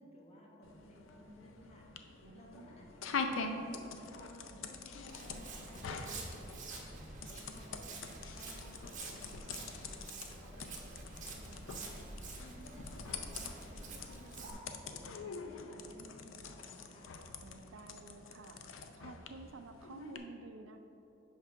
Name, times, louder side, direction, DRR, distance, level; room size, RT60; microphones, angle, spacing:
voice 1, 0.0-1.9 2.3-3.6 3.9-6.8 7.2-12.1 12.3-17.1, equal, 35° left, -2 dB, 1.1 m, -57 dB
sound 1, 0.6-20.2, left 4 dB, 80° left, 0.5 m, -45 dB
voice 2, 2.2-2.8 17.4-20.8, right 3 dB, 90° right, 8 dB, 0.5 m, -52 dB
Walk footsteps, 5.1-14.5, right 3 dB, 40° right, 1.0 m, -48 dB
5.7 x 4.7 x 5.8 m, 2.9 s
head